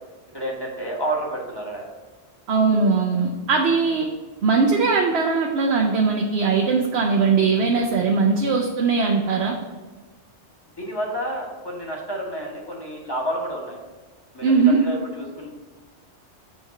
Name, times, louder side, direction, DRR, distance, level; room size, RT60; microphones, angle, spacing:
voice 1, 0.3-1.9 3.5-3.7 10.8-13.8 14.3-15.5, right 1 dB, 20° left, -1 dB, 1.3 m, -30 dB
voice 2, 2.5-4.1 4.4-9.6 14.4-14.8, right 4 dB, 70° right, 1 dB, 0.9 m, -20 dB
7.1 x 3.4 x 6.3 m, 1.3 s
omnidirectional pair, 1.2 m